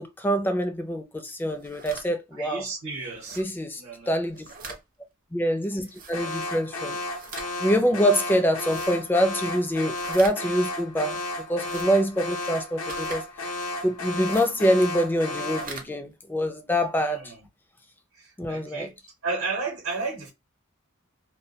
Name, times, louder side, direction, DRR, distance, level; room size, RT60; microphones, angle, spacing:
voice 1, 0.0-2.6 3.4-3.8 4.1-4.7 5.3-7.0 7.6-11.2 11.5-13.5 13.8-17.2 18.4-18.9, equal, 10° left, 0.3 m, -25 dB
sound 1, 1.5-2.1 3.2-3.5 4.3-4.8 5.9-6.1 7.0-7.5 8.6-8.9 10.0-10.4 11.5-11.9 12.9-13.2 14.2-14.5 15.4-15.9, right 4 dB, 40° right, 0.5 m, -41 dB
voice 2, 2.3-3.4 3.8-4.2 17.0-17.4 18.1-18.9 19.2-20.3, right 4 dB, 70° right, 0.8 m, -33 dB
Alarm, 6.1-15.8, left 2 dB, 85° left, 0.6 m, -33 dB
2.2 x 2.1 x 2.7 m
head